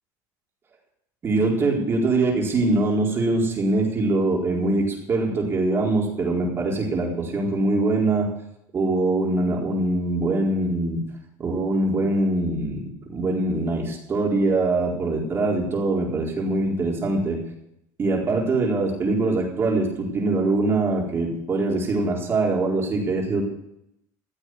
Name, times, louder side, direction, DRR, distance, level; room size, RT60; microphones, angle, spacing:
voice 1, 1.2-8.3 8.7-11.0 11.4-17.4 18.0-23.4, right 2 dB, 30° right, -1 dB, 4.3 m, -23 dB
15.0 x 8.1 x 7.8 m, 0.82 s
supercardioid pair, 120°, 9 cm